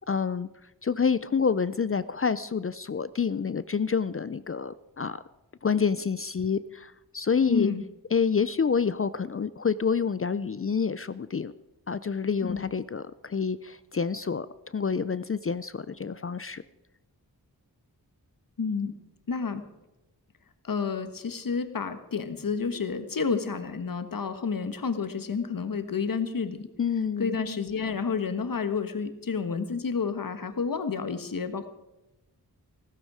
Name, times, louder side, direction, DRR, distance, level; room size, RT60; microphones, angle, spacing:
voice 1, 0.1-0.5 0.8-5.2 5.6-7.7 8.1-11.5 11.9-16.6 26.8-27.3, left 6 dB, 35° left, 16 dB, 0.5 m, -28 dB
voice 2, 7.5-7.8 12.4-12.7 18.6-18.9 19.3-19.6 20.6-26.7 27.2-31.7, left 5 dB, 60° left, 10 dB, 1.4 m, -30 dB
15.5 x 15.0 x 4.9 m, 0.97 s
wide cardioid pair, 115°, 38 cm